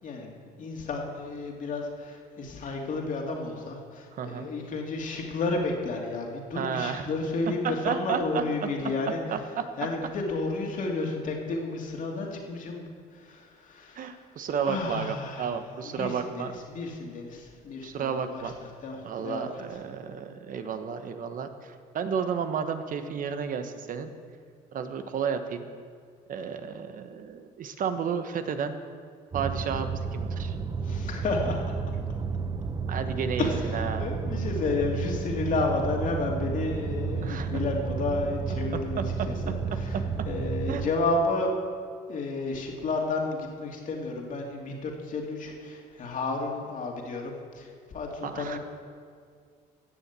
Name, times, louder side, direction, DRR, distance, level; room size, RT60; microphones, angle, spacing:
voice 1, 0.0-9.2 9.8-14.2 14.6-15.5 15.8-18.4 18.8-19.6 30.8-31.6 33.4-40.0 40.3-41.5 42.1-48.6, left 3 dB, 50° left, 0 dB, 2.6 m, -32 dB
voice 2, 4.2-4.5 6.5-7.1 7.6-8.7 9.3-9.6 13.9-16.5 17.8-18.5 19.0-24.1 24.7-25.7 26.3-28.8 29.3-30.6 32.9-34.1 37.2-37.6 39.0-40.0 40.7-40.8 48.2-48.6, right 7 dB, 55° right, 8 dB, 1.2 m, -32 dB
sound 1, 29.3-40.9, right 5 dB, 25° right, 0.6 m, -32 dB
15.5 x 7.2 x 8.3 m, 2.1 s
cardioid pair, 110°, 17 cm